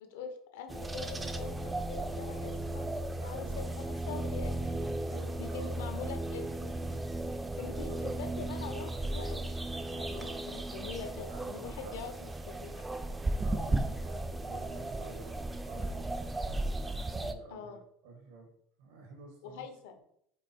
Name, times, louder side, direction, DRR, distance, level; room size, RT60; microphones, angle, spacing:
voice 1, 0.0-2.9 3.2-4.9 5.4-6.7 7.5-9.6 9.9-12.9 17.5-17.8 19.4-20.0, left 5 dB, 85° left, 6 dB, 1.0 m, -44 dB
sound 1, 0.7-17.3, right 2 dB, 10° right, 0.4 m, -35 dB
voice 2, 3.2-3.7 5.1-5.8 7.6-8.0 10.1-10.4 11.2-12.1 13.4-16.2 16.9-17.8 18.0-18.5 18.8-19.7, right 3 dB, 90° right, 2 dB, 1.8 m, -49 dB
5.1 x 4.5 x 4.5 m, 0.71 s
cardioid pair, 170°, 0 cm